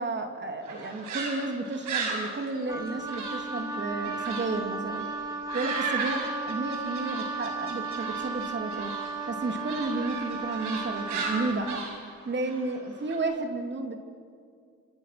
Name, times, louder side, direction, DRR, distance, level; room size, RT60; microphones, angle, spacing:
voice 1, 0.0-5.1 5.5-8.9 9.3-11.8 12.2-14.0, right 2 dB, 35° right, 5 dB, 3.2 m, -32 dB
sound 1, 0.6-4.5 4.8-13.2, right 4 dB, 75° right, 5.9 m, -36 dB
Wind instrument woodwind instrument, 2.7-11.8, right 4 dB, 10° right, 3.3 m, -35 dB
28.5 x 26.5 x 6.1 m, 2.2 s
cardioid pair, 90°, 30 cm